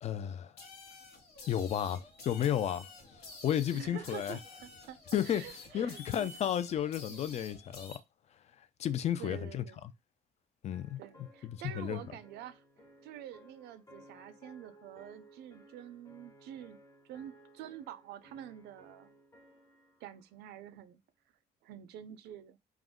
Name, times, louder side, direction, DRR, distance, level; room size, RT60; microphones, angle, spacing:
voice 1, 0.0-0.5 1.5-2.9 3.4-4.4 5.1-5.4 5.7-8.0 8.8-9.6 10.6-11.0 11.4-12.0, left 10 dB, 40° left, 0.3 m, -32 dB
sound 1, 0.6-8.0, left 3 dB, 75° left, 1.0 m, -50 dB
voice 2, 3.7-6.3 7.1-7.2 9.2-9.9 11.0-12.6 13.0-16.8 17.0-19.2 20.0-21.0 21.6-22.6, right 11 dB, 75° right, 0.4 m, -47 dB
sound 2, 10.7-20.2, right 1 dB, 20° left, 0.7 m, -59 dB
2.4 x 2.0 x 3.5 m
cardioid pair, 110°, 17 cm